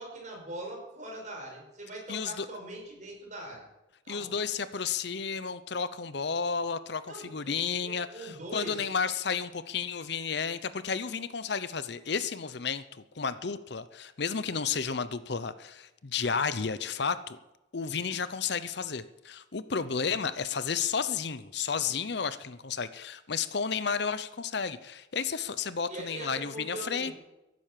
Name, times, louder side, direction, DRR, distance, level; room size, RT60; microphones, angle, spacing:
voice 1, 0.0-3.7 4.0-4.3 7.1-7.5 7.8-8.9 25.9-27.1, right 2 dB, 40° right, 0 dB, 5.5 m, -41 dB
voice 2, 2.1-2.5 4.1-12.8 13.2-17.4 17.7-27.1, left 6 dB, 55° left, 14 dB, 0.7 m, -32 dB
14.0 x 11.5 x 7.5 m, 0.96 s
head